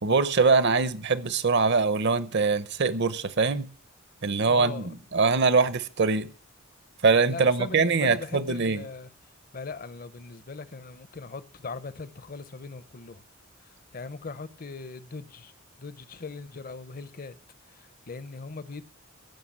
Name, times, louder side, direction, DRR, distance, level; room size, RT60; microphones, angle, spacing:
voice 1, 0.0-3.7 4.2-6.3 7.0-8.8, right 4 dB, 55° right, 0.8 m, -23 dB
voice 2, 4.4-4.9 7.3-9.1 9.5-13.2 13.9-15.5 15.8-17.4 17.8-18.8, left 4 dB, 40° left, 0.7 m, -39 dB
16.0 x 5.9 x 7.3 m
head